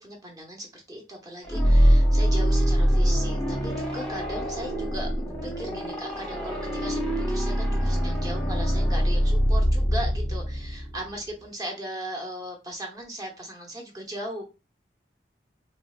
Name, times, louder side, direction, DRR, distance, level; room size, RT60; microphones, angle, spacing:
voice 1, 0.0-14.4, right 1 dB, 20° right, 0 dB, 0.9 m, -37 dB
sound 1, 1.4-11.2, equal, 5° left, 0.8 m, -23 dB
4.0 x 2.1 x 2.4 m, 0.29 s
head